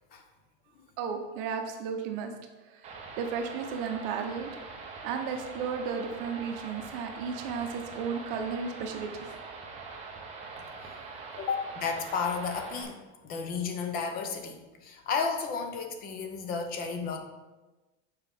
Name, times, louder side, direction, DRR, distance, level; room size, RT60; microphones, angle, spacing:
voice 1, 1.0-2.3 2.7-2.9 3.2-4.5 5.0-9.3, right 6 dB, 55° right, 4 dB, 0.9 m, -34 dB
sound 1, 2.8-12.8, right 4 dB, 20° right, 0.8 m, -43 dB
voice 2, 11.4-17.2, left 5 dB, 30° left, 5 dB, 0.6 m, -33 dB
7.2 x 4.6 x 3.6 m, 1.2 s
supercardioid pair, 165°, 32 cm